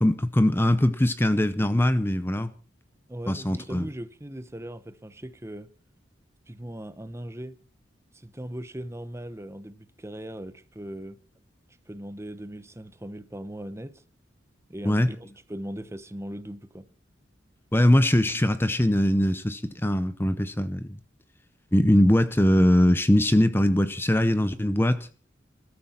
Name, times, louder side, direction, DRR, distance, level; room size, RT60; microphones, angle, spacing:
voice 1, 0.0-2.5 3.3-3.9 14.8-15.1 17.7-21.0 21.7-25.1, left 1 dB, 10° left, 0.7 m, -21 dB
voice 2, 3.1-5.7 6.5-7.6 8.1-11.2 11.9-14.0 14.7-16.9, right 1 dB, 15° right, 0.9 m, -39 dB
21.0 x 13.0 x 4.4 m
head